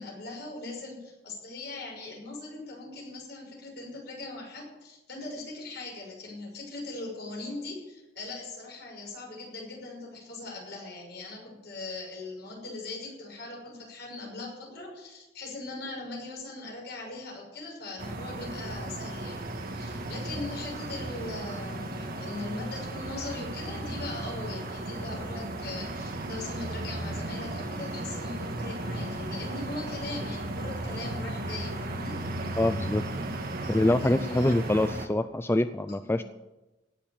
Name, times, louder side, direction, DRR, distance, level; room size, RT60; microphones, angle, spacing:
voice 1, 0.0-19.4 19.7-32.2 33.6-34.9 35.9-36.2, left 2 dB, 65° left, -1 dB, 6.0 m, -40 dB
ambience winter outdoor warm wet, 18.0-35.1, right 1 dB, 55° right, 1.6 m, -35 dB
voice 2, 32.6-33.0 33.7-36.2, left 1 dB, 15° left, 11 dB, 0.4 m, -25 dB
17.0 x 7.2 x 8.9 m, 1.0 s
head